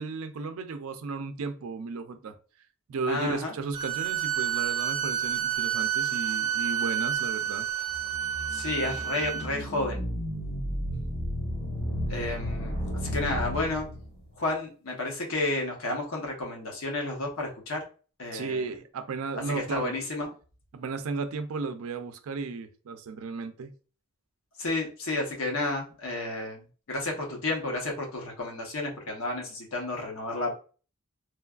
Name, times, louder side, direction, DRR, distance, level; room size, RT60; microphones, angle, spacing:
voice 1, 0.0-2.3 2.9-7.7 18.3-19.9 20.7-23.7, right 4 dB, 85° right, 0.4 m, -34 dB
voice 2, 3.1-3.5 8.5-10.0 12.1-13.9 14.4-17.8 18.2-18.6 19.5-20.3 24.6-30.6, left 2 dB, 80° left, 0.9 m, -31 dB
sound 1, 3.7-9.4, right 10 dB, 20° right, 0.6 m, -29 dB
sound 2, 7.9-14.3, equal, 50° left, 1.0 m, -33 dB
3.1 x 2.3 x 2.3 m
head